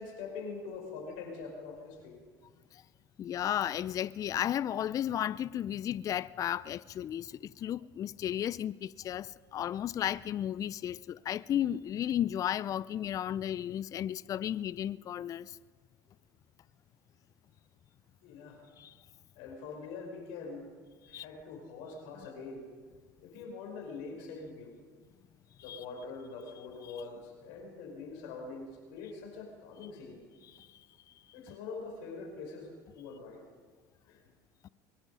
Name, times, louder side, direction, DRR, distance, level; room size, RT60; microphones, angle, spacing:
voice 1, 0.0-2.2 18.2-18.7 19.4-20.7 21.1-22.7 23.2-24.7 25.6-30.2 31.3-33.5 34.1-34.2, left 4 dB, 70° left, 5.1 m, -44 dB
voice 2, 3.2-15.6 18.8-18.9 21.1-21.2 25.7-25.8 30.4-30.8, left 10 dB, 40° left, 0.4 m, -34 dB
22.5 x 10.5 x 5.4 m
hypercardioid pair, 85°, 9 cm